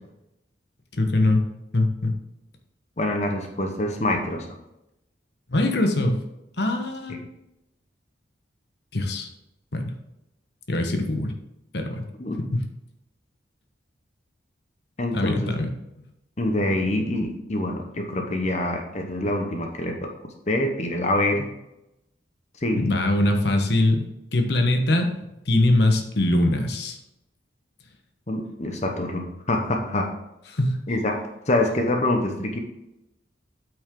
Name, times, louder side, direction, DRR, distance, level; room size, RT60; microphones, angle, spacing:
voice 1, 1.0-1.4 1.7-2.1 5.5-6.2 6.6-7.2 8.9-9.3 9.7-10.0 10.7-11.3 11.7-12.0 12.5-12.6 15.1-15.7 22.8-24.0 24.3-25.1 25.5-27.0 30.5-30.8, left 1 dB, 60° left, 4 dB, 1.2 m, -22 dB
voice 2, 3.0-4.5 7.1-7.2 12.2-12.4 15.0-15.6 16.4-20.1 20.5-21.5 22.6-22.9 28.3-30.1 30.9-31.2 31.5-32.6, left 1 dB, 35° left, 3 dB, 0.9 m, -25 dB
8.7 x 6.0 x 3.8 m, 0.89 s
head